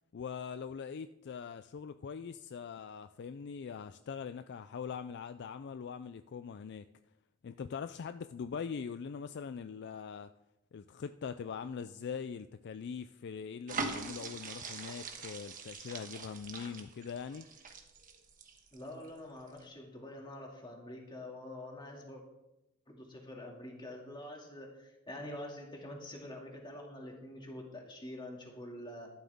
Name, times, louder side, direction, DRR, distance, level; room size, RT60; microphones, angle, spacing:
voice 1, 0.1-6.9 7.4-10.3 10.7-17.5, left 6 dB, 55° left, 11 dB, 0.4 m, -42 dB
sound 1, 13.7-19.1 19.5-19.6, right 4 dB, 40° right, 1.3 m, -42 dB
voice 2, 18.7-22.2 22.9-29.1, left 1 dB, 20° left, 0 dB, 2.5 m, -46 dB
13.0 x 11.5 x 3.6 m, 0.92 s
head